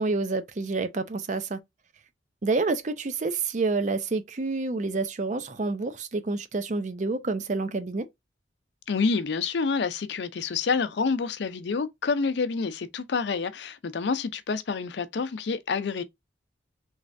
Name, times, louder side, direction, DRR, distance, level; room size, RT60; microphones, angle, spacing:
voice 1, 0.0-1.6 2.4-8.1, right 3 dB, 40° right, 0.5 m, -28 dB
voice 2, 8.9-16.0, left 4 dB, 75° left, 0.5 m, -28 dB
3.2 x 3.2 x 2.5 m
head